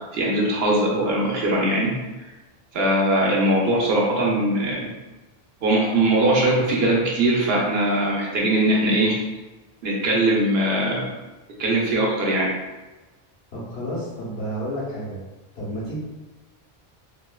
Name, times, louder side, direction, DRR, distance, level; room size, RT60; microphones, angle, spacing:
voice 1, 0.1-2.0 2.7-4.9 5.6-9.2 9.8-11.0 11.6-12.5, right 1 dB, 80° right, -3 dB, 0.9 m, -21 dB
voice 2, 13.5-15.2 15.5-16.0, equal, 85° left, -6 dB, 1.2 m, -30 dB
3.0 x 2.1 x 2.2 m, 1.1 s
omnidirectional pair, 1.0 m